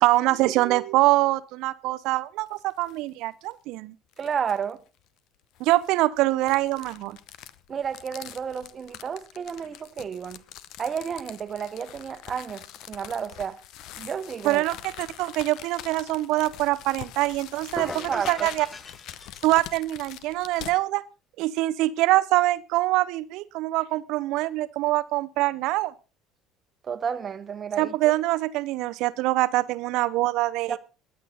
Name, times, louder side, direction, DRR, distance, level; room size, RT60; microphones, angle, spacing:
voice 1, 0.0-3.9 5.6-7.2 14.4-18.7 19.4-21.0 21.4-25.9 27.8-30.8, right 18 dB, 60° right, 0.7 m, -24 dB
sound 1, 2.5-3.0 3.4-3.5 4.1-4.7 5.5-20.8, left 12 dB, 55° left, 0.8 m, -44 dB
voice 2, 4.2-4.8 7.7-10.4 10.8-13.6 14.0-14.6 17.9-18.5 26.8-27.9 30.7-30.8, right 7 dB, 35° right, 1.1 m, -31 dB
sound 2, 17.8-19.9, left 3 dB, 15° left, 0.9 m, -39 dB
21.5 x 8.2 x 4.0 m
figure-of-eight pair, 60°, 0 cm